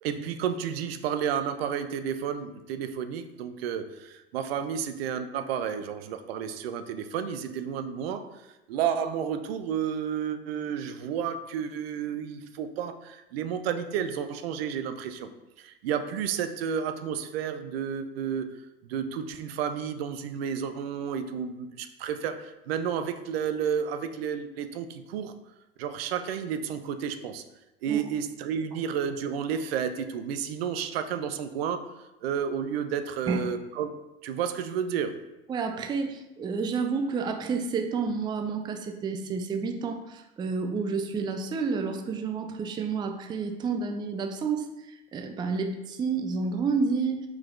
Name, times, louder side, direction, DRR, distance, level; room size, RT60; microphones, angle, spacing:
voice 1, 0.0-15.3 15.6-18.6 18.8-25.3 25.8-27.4 27.8-31.9 32.2-35.2, right 8 dB, 75° right, 9 dB, 0.5 m, -31 dB
voice 2, 35.5-47.3, right 4 dB, 15° right, 6 dB, 0.3 m, -30 dB
4.7 x 3.8 x 2.5 m, 0.97 s
hypercardioid pair, 85°, 31 cm